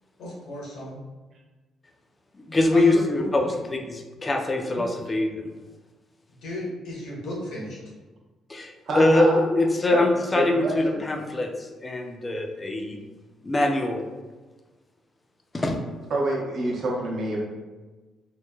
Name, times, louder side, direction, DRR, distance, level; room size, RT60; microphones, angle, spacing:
voice 1, 0.2-1.0 2.7-3.6 4.7-4.8 6.3-7.8, left 1 dB, 80° left, -5 dB, 0.9 m, -34 dB
voice 2, 2.4-5.5 8.5-13.0 13.4-14.0 15.5-15.8, left 2 dB, 25° left, 3 dB, 0.3 m, -23 dB
voice 3, 8.9-9.4 9.9-10.0 10.3-10.7 16.1-17.4, right 2 dB, 60° right, -3 dB, 0.7 m, -27 dB
3.0 x 2.1 x 2.2 m, 1.2 s
cardioid pair, 90°, 0 cm